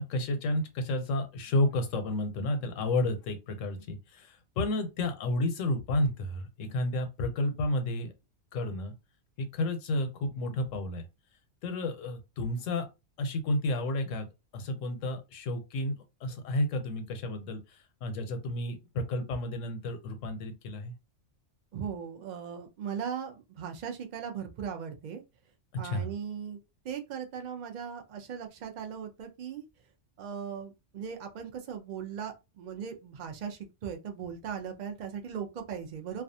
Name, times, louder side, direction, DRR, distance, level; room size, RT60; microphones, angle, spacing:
voice 1, 0.0-8.1 8.5-8.9 9.4-11.0 11.6-12.9 13.2-14.3 14.5-17.6 18.0-20.9 25.8-26.1, left 1 dB, 90° left, 1.0 m, -31 dB
voice 2, 21.7-25.2 25.8-26.6 26.8-29.6 30.2-36.2, right 7 dB, 60° right, 0.5 m, -38 dB
2.4 x 2.2 x 2.6 m
omnidirectional pair, 1.3 m